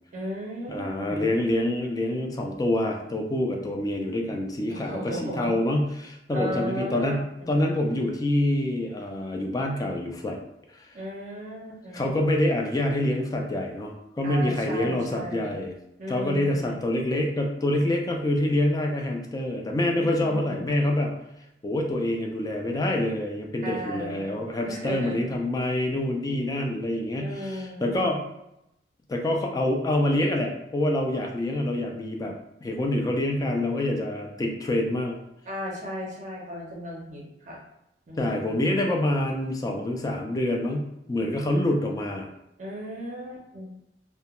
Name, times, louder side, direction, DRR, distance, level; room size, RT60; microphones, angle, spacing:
voice 1, 0.1-1.3 4.7-5.6 6.3-7.5 10.9-12.1 14.2-15.6 16.0-16.8 19.9-20.8 23.6-24.4 24.7-25.3 27.2-28.2 35.5-37.6 38.1-38.6 42.6-43.8, equal, 45° right, -3 dB, 0.5 m, -36 dB
voice 2, 0.7-10.4 10.7-10.8 11.9-15.7 16.1-21.2 21.6-28.2 29.1-32.3 32.6-35.2 38.2-42.3, left 1 dB, 20° left, 1 dB, 0.3 m, -26 dB
2.2 x 2.1 x 2.9 m, 0.84 s
head